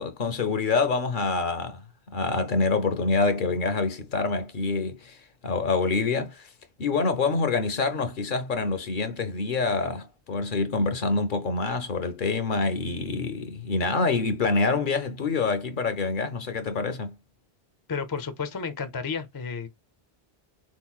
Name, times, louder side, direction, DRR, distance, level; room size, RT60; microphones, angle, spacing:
voice 1, 0.0-1.8 2.1-6.5 6.8-17.1, left 4 dB, 60° left, 0.7 m, -26 dB
voice 2, 17.9-19.7, left 5 dB, 30° left, 0.4 m, -32 dB
3.9 x 3.0 x 2.3 m
omnidirectional pair, 1.0 m